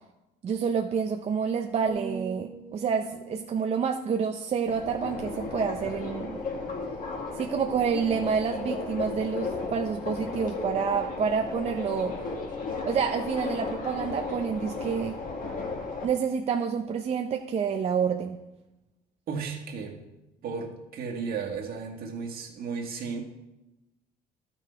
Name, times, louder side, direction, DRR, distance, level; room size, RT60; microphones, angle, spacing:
voice 1, 0.4-6.5 7.3-12.2 12.8-15.2 16.0-18.4, right 6 dB, 40° right, 4 dB, 0.6 m, -28 dB
sound 1, 1.9-5.8 6.3-6.5, right 4 dB, 15° left, 1.4 m, -44 dB
Subway metro underground, 4.7-16.1, left 4 dB, 55° left, 2.0 m, -34 dB
voice 2, 19.3-20.0 20.4-23.2, right 5 dB, 65° right, 2 dB, 1.8 m, -34 dB
12.5 x 6.2 x 4.5 m, 0.98 s
cardioid pair, 110°, 17 cm